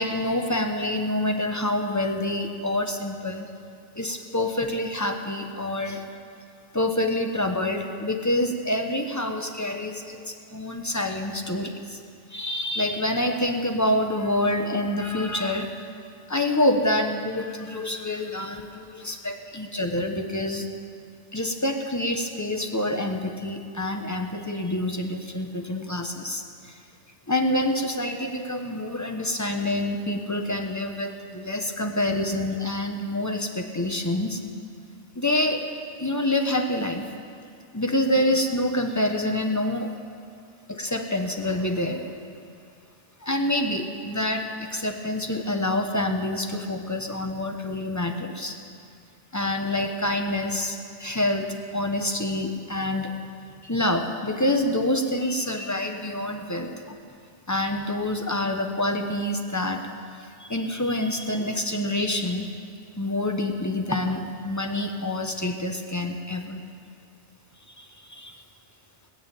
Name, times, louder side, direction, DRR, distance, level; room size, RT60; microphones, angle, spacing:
voice 1, 0.0-3.5 4.0-6.0 6.7-12.0 12.3-15.7 16.3-20.7 21.3-26.7 27.3-34.4 35.1-35.7 36.0-37.1 37.7-39.9 40.7-42.0 43.2-48.6 49.3-53.1 53.6-57.0 57.5-59.9 60.4-62.5 63.0-66.6 67.8-68.4, left 1 dB, 15° left, 4 dB, 1.0 m, -27 dB
19.5 x 6.7 x 9.1 m, 2.3 s
omnidirectional pair, 1.2 m